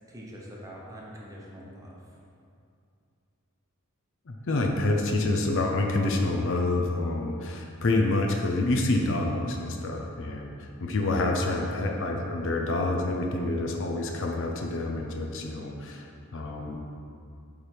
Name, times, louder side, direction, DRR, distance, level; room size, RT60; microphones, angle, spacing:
voice 1, 0.1-2.2, equal, 15° right, -4 dB, 0.9 m, -44 dB
voice 2, 4.3-16.1 16.3-16.8, left 2 dB, 60° left, 2 dB, 0.6 m, -27 dB
8.5 x 3.5 x 4.5 m, 2.5 s
head